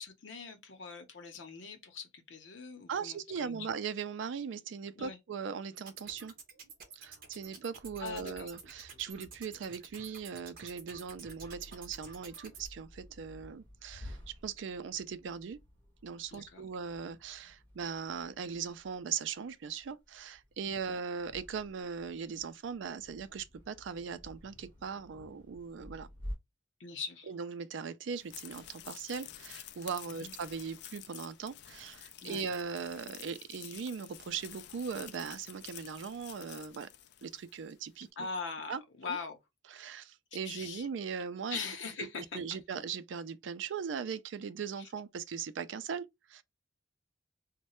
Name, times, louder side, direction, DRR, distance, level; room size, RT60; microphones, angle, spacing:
voice 1, 0.0-3.5 5.0-5.2 8.0-8.5 16.3-16.6 20.7-21.0 26.8-27.3 30.1-30.3 32.2-32.5 38.2-39.4 40.4-40.9 41.5-42.4 44.8-44.9, left 5 dB, 80° left, 0.7 m, -42 dB
voice 2, 2.9-6.3 6.9-15.6 16.0-26.1 27.3-36.9 37.2-38.3 38.7-39.2 39.7-41.6 42.0-42.1 42.3-46.4, right 6 dB, 80° right, 0.4 m, -39 dB
sound 1, 5.8-12.7, right 5 dB, 50° right, 0.8 m, -51 dB
sound 2, 7.8-26.4, equal, 25° right, 1.5 m, -52 dB
sound 3, 28.1-37.7, left 12 dB, 60° left, 0.3 m, -50 dB
3.1 x 2.1 x 2.9 m
head